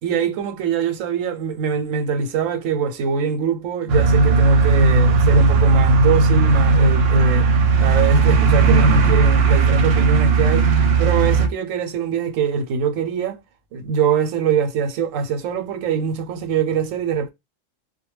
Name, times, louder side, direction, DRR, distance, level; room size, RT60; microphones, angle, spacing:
voice 1, 0.0-7.5 7.8-10.7 11.0-13.4 13.7-17.3, right 6 dB, 90° right, 1.0 m, -23 dB
sound 1, 3.9-11.5, right 4 dB, 60° right, 0.7 m, -16 dB
2.2 x 2.0 x 3.1 m
omnidirectional pair, 1.3 m